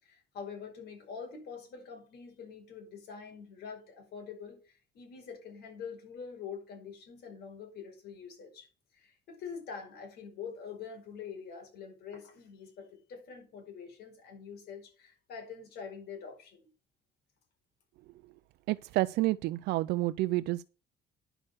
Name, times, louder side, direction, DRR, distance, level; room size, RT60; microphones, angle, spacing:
voice 1, 0.0-16.7, left 6 dB, 75° left, 5.1 m, -45 dB
voice 2, 18.7-20.6, right 18 dB, 80° right, 0.5 m, -29 dB
10.0 x 6.5 x 6.3 m
cardioid pair, 110°, 17 cm